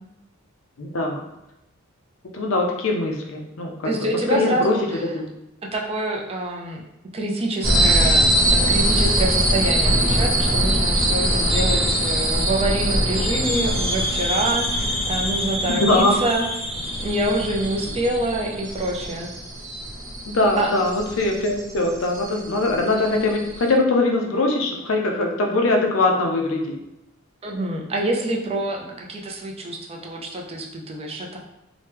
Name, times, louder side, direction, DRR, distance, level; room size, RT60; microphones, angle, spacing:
voice 1, 0.8-1.2 2.3-3.9 4.3-4.7 5.1-5.3 15.7-16.2 20.3-26.6, left 2 dB, 70° left, 1 dB, 0.5 m, -21 dB
voice 2, 3.8-5.2 5.7-6.8 7.1-16.5 16.9-19.3 20.6-20.7 27.4-31.4, right 1 dB, 30° right, 0 dB, 0.4 m, -26 dB
sound 1, 7.6-23.7, right 1 dB, 80° right, 0.9 m, -22 dB
3.0 x 2.2 x 3.3 m, 0.89 s
head